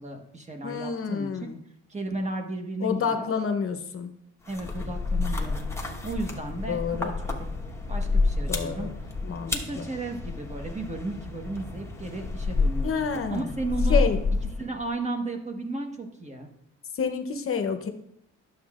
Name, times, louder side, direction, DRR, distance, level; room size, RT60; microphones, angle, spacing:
voice 1, 0.0-1.3 1.9-3.3 4.5-5.7 6.0-7.4 7.9-8.9 9.5-13.0 13.3-14.0 14.6-16.5, right 2 dB, 25° right, 4 dB, 1.3 m, -34 dB
voice 2, 0.6-1.6 2.8-4.1 6.7-7.1 8.5-8.9 9.2-9.9 12.8-13.5 13.9-14.2 16.9-17.9, left 6 dB, 45° left, 6 dB, 0.8 m, -28 dB
sound 1, 4.4-14.8, left 3 dB, 10° left, 1.2 m, -29 dB
11.0 x 7.1 x 2.5 m, 0.73 s
cardioid pair, 90°, 30 cm